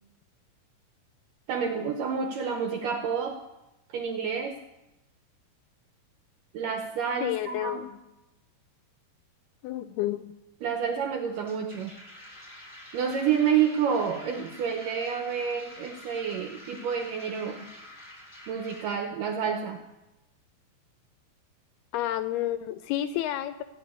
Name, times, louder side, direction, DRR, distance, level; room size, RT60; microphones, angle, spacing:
voice 1, 1.5-3.4 3.9-4.6 6.5-7.9 10.6-11.9 12.9-17.7 18.5-19.8, right 7 dB, 80° right, 4 dB, 1.9 m, -29 dB
voice 2, 7.2-8.0 9.6-10.3 21.9-23.6, left 13 dB, 80° left, 11 dB, 2.3 m, -30 dB
sound 1, 11.3-19.0, left 1 dB, 15° left, 0.9 m, -48 dB
15.0 x 6.8 x 9.6 m, 0.97 s
omnidirectional pair, 4.9 m